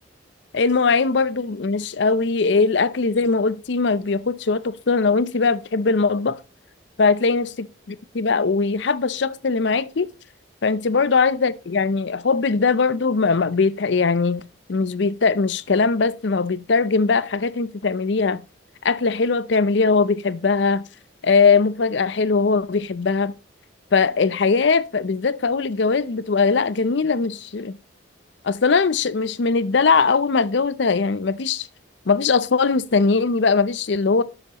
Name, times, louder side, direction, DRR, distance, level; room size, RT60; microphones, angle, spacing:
voice 1, 0.5-6.4 7.0-7.5 8.1-10.1 10.6-18.4 18.8-20.8 21.2-23.3 23.9-27.8 28.4-31.7 32.1-34.2, left 4 dB, 65° left, 0.6 m, -20 dB
11.5 x 7.8 x 3.0 m
head